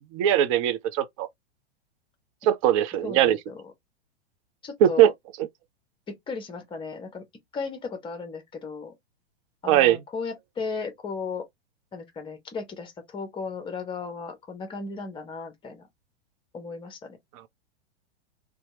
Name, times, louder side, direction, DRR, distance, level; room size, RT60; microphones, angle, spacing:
voice 1, 0.1-1.3 2.4-3.4 4.8-5.1 9.7-10.0, right 11 dB, 30° right, 0.4 m, -20 dB
voice 2, 3.0-3.6 4.6-5.1 6.1-7.2 7.5-8.9 9.6-11.5 11.9-15.8 16.5-17.2, left 4 dB, 15° left, 0.9 m, -35 dB
2.8 x 2.3 x 2.7 m
figure-of-eight pair, 100°, 32 cm